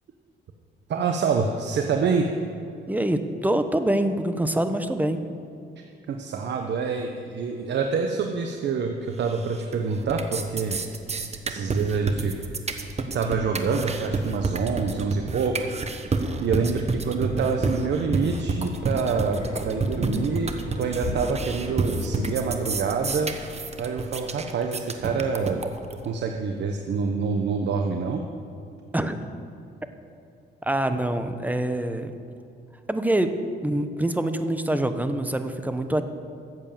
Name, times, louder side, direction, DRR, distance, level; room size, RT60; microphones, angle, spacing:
voice 1, 0.9-2.3 6.1-10.8 11.4-12.4 13.1-23.3 23.8-25.7 26.0-28.2, right 5 dB, 60° right, 4 dB, 1.0 m, -26 dB
voice 2, 2.9-5.3 28.9-29.2 30.6-32.1 32.9-33.3 33.6-36.0, right 1 dB, 10° right, 9 dB, 1.0 m, -25 dB
sound 1, 9.3-9.8 10.0-26.0, right 3 dB, 35° right, 1.2 m, -29 dB
sound 2, 19.3-23.9, left 1 dB, 30° left, 2.4 m, -37 dB
14.0 x 8.2 x 7.3 m, 2.7 s
cardioid pair, 90°, 20 cm